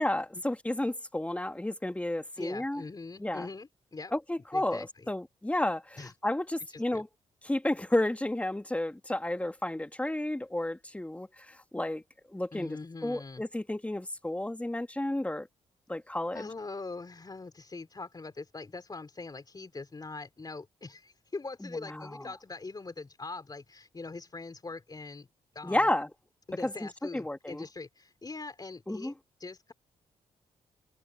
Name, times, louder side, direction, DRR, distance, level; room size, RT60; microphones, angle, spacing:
voice 1, 0.0-2.8 3.2-3.5 4.1-7.1 7.4-12.0 12.3-15.5 15.9-16.5 21.6-22.2 25.6-26.1 26.6-27.7 28.9-29.1, left 1 dB, 10° left, 2.1 m, -32 dB
voice 2, 2.4-4.1 4.5-5.1 6.0-6.1 6.7-7.0 12.5-13.4 16.3-25.3 25.5-25.9 26.5-29.1 29.4-29.7, left 3 dB, 30° left, 3.8 m, -42 dB
supercardioid pair, 60°, 13 cm